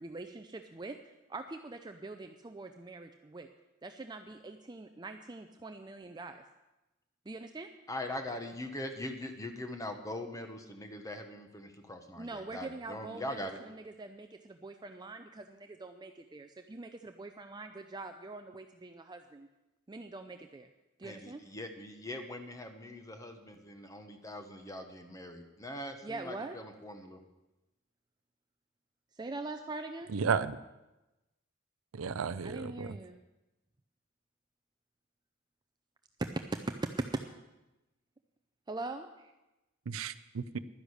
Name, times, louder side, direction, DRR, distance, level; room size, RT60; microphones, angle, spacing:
voice 1, 0.0-3.5 3.8-6.4 7.3-7.7 12.2-19.5 19.9-20.7 21.0-21.4 26.0-26.6 29.1-30.1 32.4-33.2 36.2-36.3 36.8-37.2 38.7-39.3, right 2 dB, 20° right, 6 dB, 0.5 m, -43 dB
voice 2, 7.9-13.6 21.0-27.2, left 1 dB, 15° left, 5 dB, 1.2 m, -42 dB
voice 3, 30.1-30.6 31.9-32.9 39.9-40.6, right 6 dB, 80° right, 14 dB, 0.5 m, -33 dB
12.0 x 10.0 x 6.5 m, 1.0 s
head